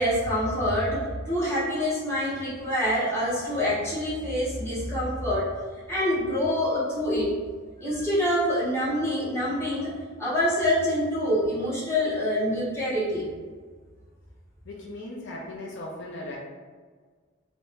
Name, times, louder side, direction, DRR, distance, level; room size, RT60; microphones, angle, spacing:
voice 1, 0.0-5.5 5.9-7.4 7.8-13.2, equal, 15° left, -9 dB, 0.8 m, -26 dB
voice 2, 14.7-16.4, left 1 dB, 60° left, -2 dB, 0.4 m, -38 dB
2.7 x 2.0 x 3.0 m, 1.5 s
head